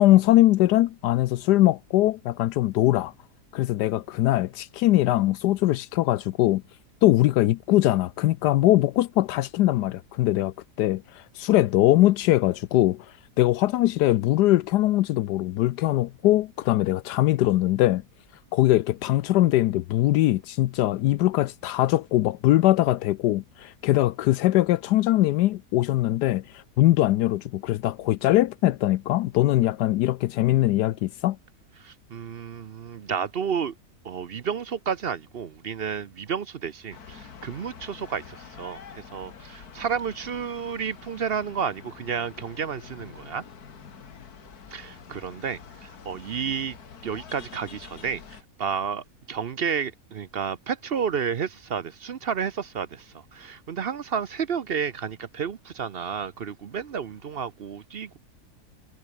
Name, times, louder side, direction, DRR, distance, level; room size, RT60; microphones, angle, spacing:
voice 1, 0.0-3.1 3.5-6.6 7.0-18.0 18.5-31.4, left 15 dB, 80° left, 1.2 m, -21 dB
voice 2, 31.8-33.7 34.0-43.4 44.7-46.8 47.0-58.2, right 7 dB, 50° right, 0.7 m, -31 dB
sound 1, 36.9-48.4, left 6 dB, 65° left, 2.2 m, -46 dB
omnidirectional pair, 1.8 m